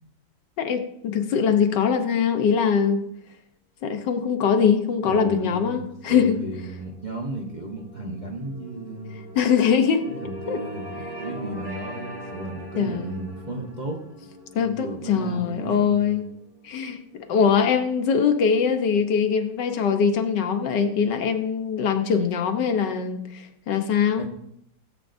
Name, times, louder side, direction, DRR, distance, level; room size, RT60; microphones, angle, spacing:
voice 1, 0.6-3.0 3.8-6.4 9.3-10.0 10.5-10.6 12.8-13.3 14.5-16.3 16.6-17.0 17.3-24.2, left 6 dB, 70° left, 6 dB, 1.5 m, -22 dB
voice 2, 5.0-9.3 10.1-14.0 14.5-16.2 24.2-24.3, right 2 dB, 30° right, -2 dB, 0.9 m, -34 dB
sound 1, 5.9-18.1, right 1 dB, 50° right, 2.7 m, -42 dB
17.5 x 8.2 x 2.6 m, 0.75 s
omnidirectional pair, 2.0 m